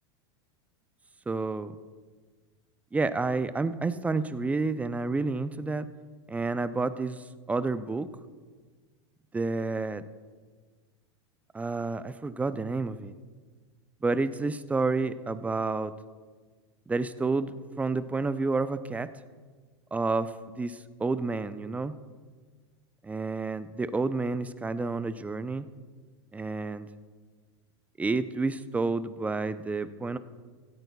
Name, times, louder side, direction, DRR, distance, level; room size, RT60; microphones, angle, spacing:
voice 1, 1.3-1.7 2.9-5.9 6.3-8.1 9.3-10.0 11.5-13.1 14.0-15.9 16.9-19.1 19.9-21.9 23.0-25.7 26.3-26.9 28.0-30.2, right 3 dB, 10° right, 13 dB, 0.5 m, -30 dB
17.0 x 13.5 x 2.3 m, 1.5 s
hypercardioid pair, 110°, 15 cm